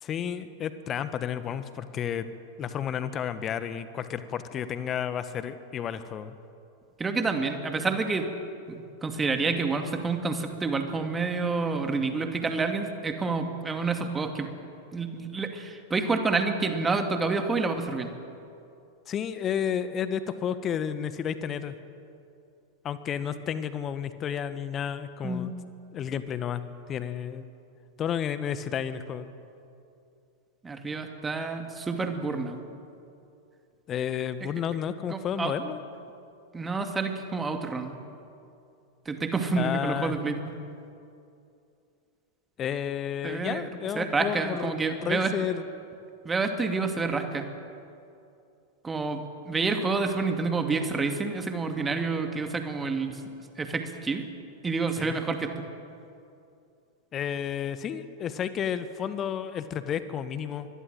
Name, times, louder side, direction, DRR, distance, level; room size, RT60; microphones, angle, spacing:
voice 1, 0.0-2.3 2.6-6.4 19.1-21.7 22.8-25.5 25.9-26.6 26.9-27.4 28.0-29.3 33.9-35.8 39.6-40.2 42.6-45.6 55.0-55.2 57.1-60.7, left 8 dB, 30° left, 12 dB, 1.4 m, -31 dB
voice 2, 7.0-8.3 8.7-14.5 14.9-18.1 25.2-25.5 30.6-32.6 35.1-35.5 36.5-38.0 39.1-40.5 43.2-43.7 44.0-45.3 46.2-47.5 48.8-53.2 53.6-54.2 54.6-55.5, right 4 dB, 15° right, 6 dB, 2.5 m, -28 dB
24.5 x 22.0 x 7.8 m, 2.6 s
figure-of-eight pair, 90°, 0 cm